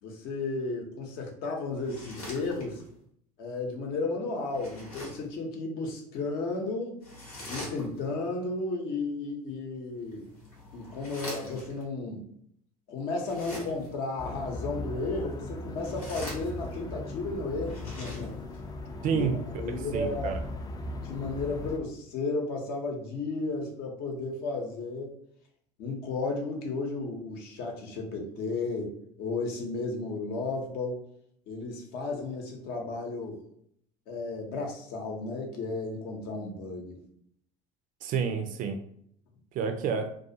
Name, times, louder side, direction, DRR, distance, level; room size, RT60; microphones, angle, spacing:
voice 1, 0.0-2.8 3.4-7.0 7.5-10.3 10.7-12.2 12.9-18.4 19.0-19.3 19.5-20.4 20.9-25.2 25.8-28.9 29.2-31.0 31.5-33.4 34.1-37.0, left 3 dB, 60° left, 1 dB, 0.8 m, -33 dB
sound 1, 1.7-3.0 4.5-5.3 7.0-8.2 10.0-11.8 13.2-14.0 15.6-16.9 17.5-18.6, left 1 dB, 90° left, 0.9 m, -43 dB
sound 2, 14.2-21.8, left 2 dB, 20° left, 0.4 m, -38 dB
voice 2, 19.0-19.4 19.9-20.3 38.0-38.8 39.5-40.1, right 6 dB, 50° right, 6 dB, 0.4 m, -29 dB
2.4 x 2.3 x 2.7 m, 0.68 s
hypercardioid pair, 65°, 18 cm